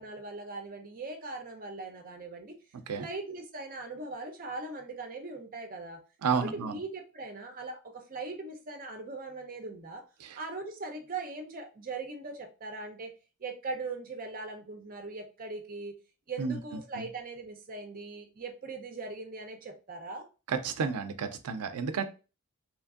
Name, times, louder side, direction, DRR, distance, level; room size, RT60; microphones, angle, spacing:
voice 1, 0.0-2.6 3.0-6.0 6.3-10.0 10.4-13.1 13.4-15.9 16.3-20.2, right 3 dB, 40° right, 0.6 m, -40 dB
voice 2, 6.2-6.8 10.2-10.4 16.4-16.6 16.9-17.0 20.5-22.0, right 5 dB, 85° right, 0.4 m, -31 dB
3.1 x 2.5 x 2.4 m
head